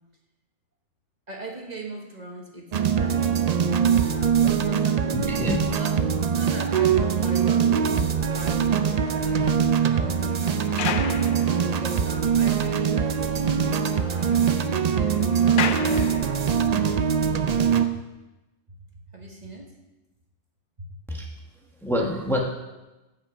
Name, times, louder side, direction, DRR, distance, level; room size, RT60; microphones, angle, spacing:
voice 1, 1.3-3.3 4.0-5.2 5.5-7.6 8.1-11.2 11.7-14.4 14.9-16.3 16.7-18.0 18.9-19.7 20.8-21.0, right 2 dB, 35° right, 0 dB, 1.3 m, -40 dB
sound 1, 2.7-17.9, right 7 dB, 55° right, 0.5 m, -22 dB
voice 2, 5.1-5.7 21.1-21.3 21.8-22.4, left 1 dB, ahead, 0 dB, 1.1 m, -26 dB
sound 2, 8.6-12.3 12.6-12.7 13.1-13.2 13.5-16.7 17.4-17.6, left 8 dB, 60° left, 0.6 m, -36 dB
14.5 x 5.6 x 5.0 m, 1.0 s
omnidirectional pair, 1.2 m